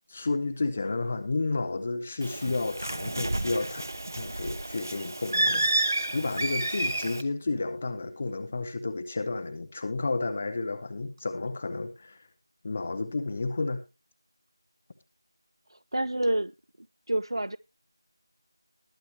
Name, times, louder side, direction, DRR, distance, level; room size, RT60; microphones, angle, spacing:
voice 1, 0.1-3.8 4.2-5.7 6.1-12.2 12.6-13.8, left 3 dB, 15° left, 0.5 m, -31 dB
Bird, 2.2-7.2, right 1 dB, 40° right, 0.9 m, -30 dB
voice 2, 15.7-16.5 17.1-17.6, right 1 dB, 75° right, 0.5 m, -28 dB
20.5 x 7.4 x 2.9 m
figure-of-eight pair, 175°, 2 cm